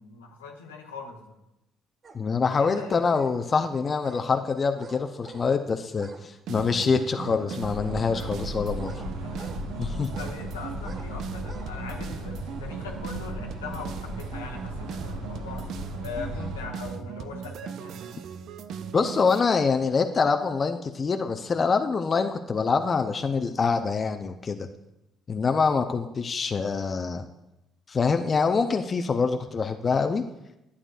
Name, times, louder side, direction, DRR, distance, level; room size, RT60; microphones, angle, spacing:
voice 1, 0.0-1.4 2.6-3.2 9.0-9.5 10.1-15.7 16.0-18.1, left 4 dB, 90° left, 1 dB, 1.0 m, -40 dB
sound 1, 2.0-2.2 2.6-3.4 4.0-4.3 4.8-5.5 5.9-6.3 6.6-7.5 8.1-9.6 10.1-10.4 10.8-11.1 11.4-11.7 12.2-12.3, right 4 dB, 45° right, 0.9 m, -47 dB
voice 2, 2.1-8.9 9.8-10.1 18.9-24.7 25.3-27.2 27.9-30.2, left 5 dB, 40° left, 6 dB, 0.5 m, -25 dB
sound 2, 6.5-19.4, right 7 dB, 65° right, 0.4 m, -38 dB
sound 3, 7.6-16.6, left 1 dB, 85° right, 1.3 m, -37 dB
11.0 x 8.5 x 2.5 m, 0.91 s
hypercardioid pair, 50°, 0 cm